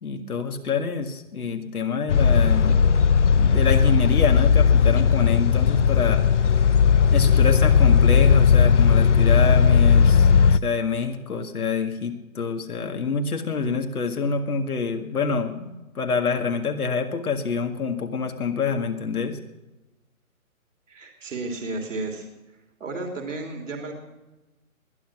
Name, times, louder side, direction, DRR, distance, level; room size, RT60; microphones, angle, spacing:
voice 1, 0.0-2.8 3.4-6.6 7.1-19.4, left 5 dB, 85° left, 5 dB, 2.1 m, -26 dB
sound 1, 2.1-10.6, left 6 dB, 55° left, 0.6 m, -17 dB
voice 2, 20.9-23.9, right 2 dB, 60° right, 3 dB, 3.2 m, -33 dB
20.5 x 10.5 x 6.0 m, 1.1 s
hypercardioid pair, 170°, 43 cm